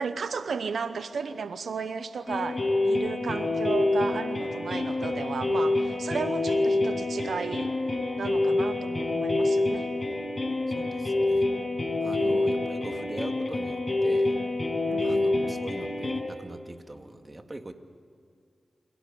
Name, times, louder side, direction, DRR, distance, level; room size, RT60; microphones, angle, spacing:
voice 1, 0.0-7.7 8.2-9.9 12.1-12.5 14.9-15.6, right 5 dB, 85° right, 11 dB, 0.8 m, -34 dB
sound 1, 2.3-16.2, left 2 dB, 35° left, 6.7 m, -27 dB
voice 2, 10.7-11.5 12.0-14.3 15.0-17.7, right 2 dB, 30° right, 6 dB, 2.2 m, -42 dB
26.5 x 17.5 x 9.9 m, 2.3 s
cardioid pair, 50°, 0 cm